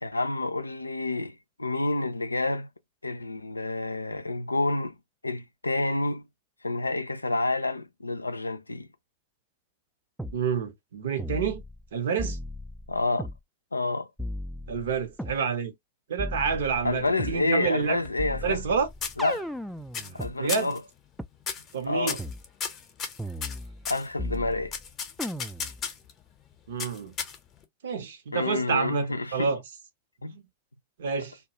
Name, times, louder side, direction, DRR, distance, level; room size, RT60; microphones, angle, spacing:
voice 1, 0.0-2.7 3.0-5.0 5.2-6.3 6.6-8.9 12.9-13.3 13.7-14.1 16.8-18.6 19.2-19.5 20.1-20.8 21.9-22.2 23.9-24.8 28.3-29.5 30.2-30.4, left 2 dB, 80° left, 0.3 m, -29 dB
sound 1, 10.2-10.4 11.2-11.9 12.2-13.4 14.2-15.4 16.2-17.4 18.2-20.3 21.2-21.3 22.2-22.4 23.2-23.9 24.2-24.8 25.2-25.8, left 1 dB, ahead, 0.3 m, -36 dB
voice 2, 10.3-11.6 11.9-12.4 14.7-15.7 16.1-18.0 18.4-18.9 20.0-20.7 21.7-22.2 26.7-27.1 27.8-29.6 30.3-30.4 31.0-31.4, right 6 dB, 60° right, 0.8 m, -28 dB
sound 2, 17.8-18.7 19.0-19.6 19.9-20.2 20.5-20.8 21.4-21.7 22.1-24.1 24.7-26.1 26.8-27.6, left 6 dB, 30° left, 0.7 m, -34 dB
2.2 x 2.2 x 2.8 m
figure-of-eight pair, 90°, 0 cm